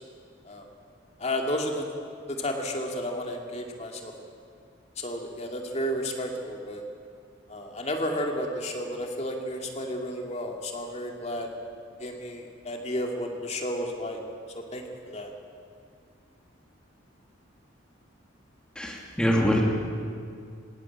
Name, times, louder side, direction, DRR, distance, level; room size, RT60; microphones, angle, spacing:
voice 1, 1.2-1.9 2.3-4.1 5.0-6.8 7.5-11.5 12.0-14.2 14.5-15.3, equal, 35° left, 2 dB, 2.4 m, -32 dB
voice 2, 18.7-19.6, equal, 5° left, -1 dB, 2.7 m, -24 dB
19.5 x 18.5 x 8.7 m, 2.2 s
head